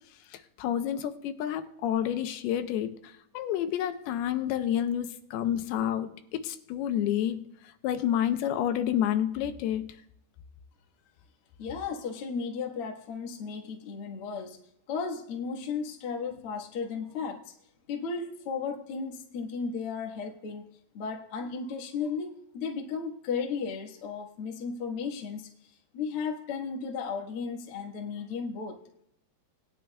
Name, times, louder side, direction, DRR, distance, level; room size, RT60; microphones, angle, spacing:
voice 1, 0.3-3.0 3.3-7.4 7.8-9.9, left 10 dB, 85° left, 2.7 m, -29 dB
voice 2, 11.6-14.6 14.9-17.4 17.9-25.5 25.9-28.8, left 5 dB, 55° left, 1.6 m, -35 dB
20.0 x 11.0 x 2.2 m
omnidirectional pair, 4.5 m